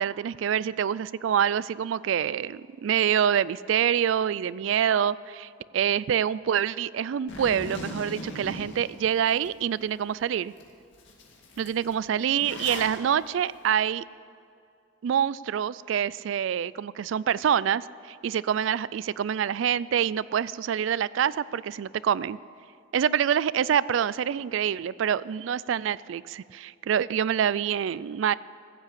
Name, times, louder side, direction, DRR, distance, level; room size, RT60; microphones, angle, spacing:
voice 1, 0.0-10.5 11.6-14.0 15.0-22.4 22.9-28.3, right 8 dB, 75° right, 20 dB, 0.3 m, -26 dB
Zipper (clothing), 7.3-9.5 10.0-10.1 10.6-10.7 10.9-13.0, left 2 dB, 65° left, 2.1 m, -39 dB
15.0 x 8.2 x 8.2 m, 2.4 s
head